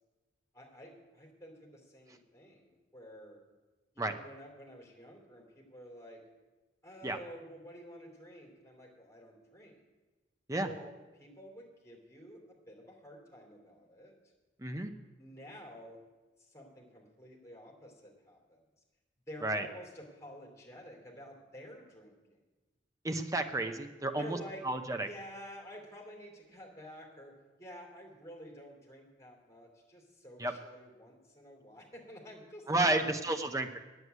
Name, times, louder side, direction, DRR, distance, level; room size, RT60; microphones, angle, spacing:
voice 1, 0.5-3.4 3.9-6.2 6.8-9.8 10.6-14.1 15.2-16.0 16.4-18.6 19.3-22.2 24.2-24.7 25.0-33.4, equal, 15° left, -1 dB, 2.9 m, -50 dB
voice 2, 14.6-14.9 19.4-19.6 23.0-24.4 24.6-25.1 30.4-30.5 32.7-33.8, right 2 dB, 15° right, 6 dB, 0.7 m, -31 dB
9.6 x 8.0 x 9.3 m, 1.2 s
head